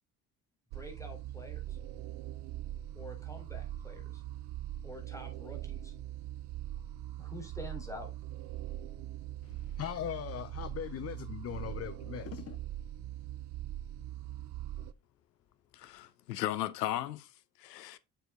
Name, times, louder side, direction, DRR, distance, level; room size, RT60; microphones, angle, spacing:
voice 1, 0.7-1.8 2.9-4.2 4.8-5.9 7.2-8.1, left 1 dB, 5° left, 3.7 m, -47 dB
sound 1, 0.7-14.9, right 13 dB, 60° right, 0.7 m, -42 dB
voice 2, 9.4-12.6, left 10 dB, 30° left, 0.6 m, -40 dB
voice 3, 15.7-17.3 17.6-18.0, left 13 dB, 85° left, 0.7 m, -36 dB
7.0 x 6.8 x 3.7 m
figure-of-eight pair, 50°, 48 cm